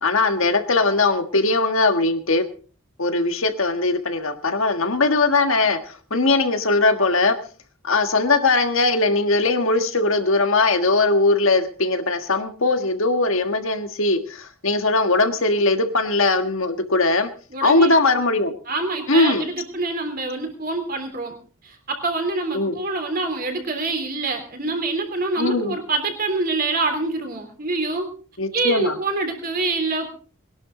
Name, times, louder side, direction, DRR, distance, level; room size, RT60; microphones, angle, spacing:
voice 1, 0.0-2.4 3.0-7.4 7.8-17.3 17.6-18.5 19.1-19.5 22.5-22.8 25.4-25.7 28.4-29.0, left 3 dB, 65° left, 7 dB, 1.5 m, -20 dB
voice 2, 17.5-17.9 18.7-21.3 21.6-28.1 28.5-30.1, right 3 dB, 40° right, 5 dB, 3.3 m, -26 dB
21.0 x 11.5 x 3.8 m, 0.39 s
head